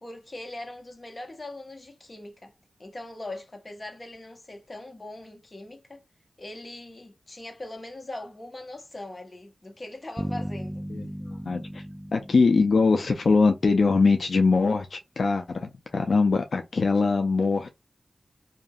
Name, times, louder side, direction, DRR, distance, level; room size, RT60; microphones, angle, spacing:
voice 1, 0.0-2.5 2.8-6.0 6.4-10.8, left 1 dB, 35° left, 0.9 m, -41 dB
sound 1, 10.2-13.9, equal, 5° right, 0.3 m, -37 dB
voice 2, 10.9-11.8 12.1-17.7, left 4 dB, 70° left, 0.4 m, -22 dB
2.8 x 2.5 x 2.3 m
wide cardioid pair, 75°, 0 cm